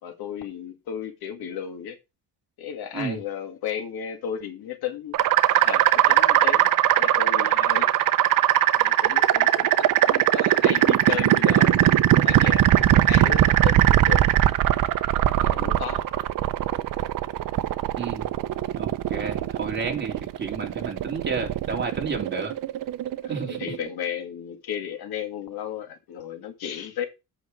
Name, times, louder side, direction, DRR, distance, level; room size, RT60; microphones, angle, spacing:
voice 1, 0.0-2.0 2.6-5.2 5.5-7.9 8.8-14.6 15.1-16.1 23.2-27.1, left 9 dB, 75° left, 2.1 m, -34 dB
sound 1, 5.1-23.9, right 13 dB, 60° right, 0.8 m, -20 dB
voice 2, 18.0-18.3 18.7-22.5 23.3-23.6, right 5 dB, 30° right, 2.9 m, -31 dB
8.1 x 6.0 x 5.2 m
cardioid pair, 125°, 38 cm